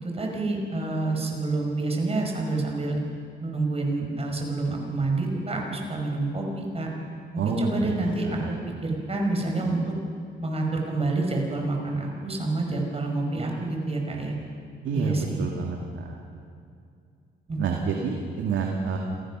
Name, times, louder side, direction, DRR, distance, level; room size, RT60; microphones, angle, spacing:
voice 1, 0.0-3.0 3.4-6.9 7.3-8.6 8.8-9.8 10.4-14.3 14.9-15.4 17.5-17.9, right 2 dB, 30° right, 1 dB, 5.0 m, -28 dB
voice 2, 7.4-7.7 8.4-8.5 14.8-16.1 17.6-19.0, right 5 dB, 70° right, 1 dB, 2.2 m, -28 dB
27.0 x 16.0 x 6.2 m, 2.4 s
cardioid pair, 90°, 20 cm